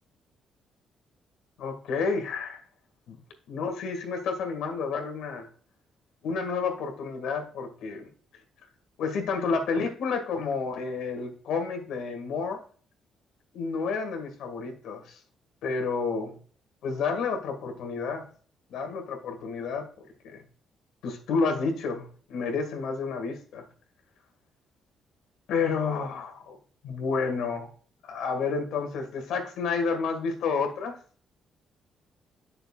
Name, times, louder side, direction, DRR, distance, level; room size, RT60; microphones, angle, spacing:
voice 1, 1.6-2.6 3.1-3.2 3.5-5.5 6.2-8.1 9.0-12.6 13.5-15.2 15.6-16.4 16.8-18.3 18.7-20.4 21.0-23.7 25.5-26.6 26.8-27.7 28.0-31.0, left 4 dB, 85° left, 5 dB, 1.9 m, -30 dB
8.5 x 6.5 x 2.4 m, 0.43 s
cardioid pair, 90°, 0 cm